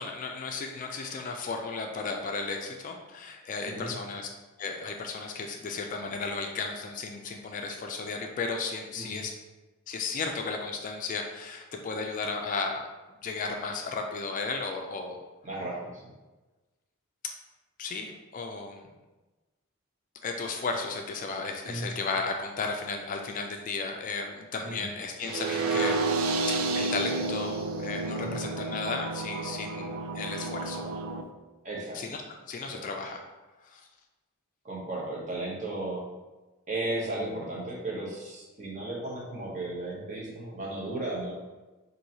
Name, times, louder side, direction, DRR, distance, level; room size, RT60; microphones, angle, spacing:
voice 1, 0.0-4.3 4.6-9.3 9.9-12.8 13.2-15.2 17.2-17.3 17.8-18.9 20.2-26.0 26.5-30.9 31.9-32.2 32.5-33.2 33.6-33.8, left 4 dB, 40° left, 3 dB, 0.3 m, -34 dB
voice 2, 15.4-16.1 21.6-21.9 24.6-24.9 28.2-28.4 31.6-32.0 32.7-32.8 34.6-36.0 36.7-41.3, right 2 dB, 35° right, -3 dB, 0.9 m, -35 dB
sound 1, 25.2-31.2, right 3 dB, 70° right, 0.4 m, -30 dB
4.5 x 2.7 x 2.7 m, 1.2 s
head